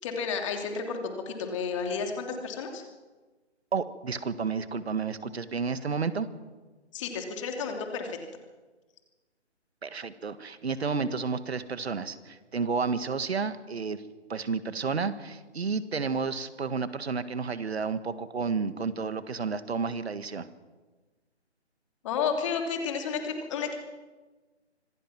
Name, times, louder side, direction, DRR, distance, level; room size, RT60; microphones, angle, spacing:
voice 1, 0.0-2.8 6.9-8.2 22.0-23.7, left 5 dB, 25° left, 4 dB, 3.1 m, -31 dB
voice 2, 3.7-6.3 9.8-14.0 14.3-20.5, right 5 dB, 65° right, 12 dB, 1.8 m, -31 dB
25.5 x 19.0 x 6.1 m, 1.3 s
figure-of-eight pair, 150°, 34 cm